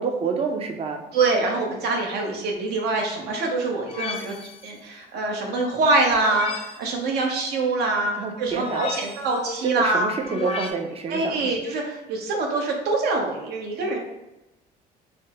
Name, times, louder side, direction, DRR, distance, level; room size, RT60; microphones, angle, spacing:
voice 1, 0.0-1.0 8.2-9.1 9.6-11.5, right 5 dB, 35° right, 4 dB, 0.4 m, -28 dB
voice 2, 1.1-4.3 4.6-8.1 8.4-10.1 11.1-14.0, right 3 dB, 75° right, 0 dB, 0.8 m, -24 dB
sound 1, 3.9-4.7 6.1-6.9 8.5-9.4 10.2-10.7, left 3 dB, 35° left, 0.5 m, -33 dB
3.3 x 2.1 x 2.8 m, 0.95 s
cardioid pair, 110°, 17 cm